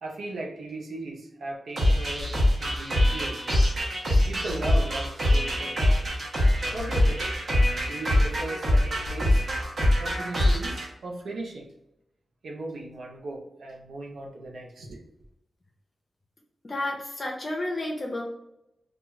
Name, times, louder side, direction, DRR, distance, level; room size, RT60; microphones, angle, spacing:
voice 1, 0.0-2.3 2.6-3.4 4.1-5.8 6.7-7.2 7.8-9.4 10.0-11.7 12.4-15.0, right 2 dB, 85° right, 0 dB, 0.6 m, -37 dB
sound 1, 1.8-10.9, left 1 dB, 60° right, 0.9 m, -24 dB
voice 2, 16.6-18.2, left 1 dB, 40° left, -1 dB, 0.6 m, -31 dB
2.3 x 2.3 x 3.0 m, 0.86 s
cardioid pair, 70°, 0 cm